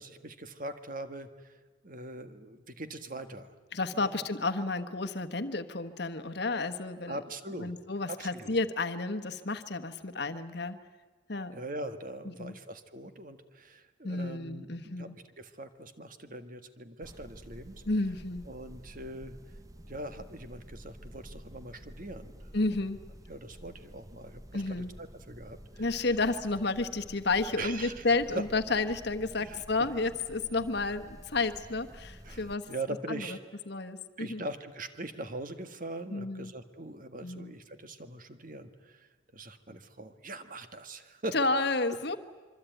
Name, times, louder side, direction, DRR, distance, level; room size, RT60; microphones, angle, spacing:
voice 1, 0.0-1.6 1.8-3.5 3.9-4.1 7.1-7.7 8.1-8.6 11.5-17.8 18.5-19.3 19.9-22.5 23.3-24.6 25.0-26.1 27.6-28.0 28.3-28.4 29.4-29.9 32.2-33.4 34.2-41.4, right 2 dB, 40° right, 9 dB, 1.6 m, -42 dB
voice 2, 3.7-7.2 7.5-10.8 11.3-11.5 12.4-12.5 14.0-15.1 17.9-18.5 22.5-23.0 24.5-24.9 25.8-32.7 33.1-33.4 33.7-34.4 36.1-36.5 37.2-37.5 41.3-42.2, left 3 dB, 55° left, 7 dB, 1.3 m, -31 dB
sound 1, 17.0-32.5, equal, 15° right, 0.9 m, -50 dB
26.0 x 24.0 x 9.2 m, 1.3 s
head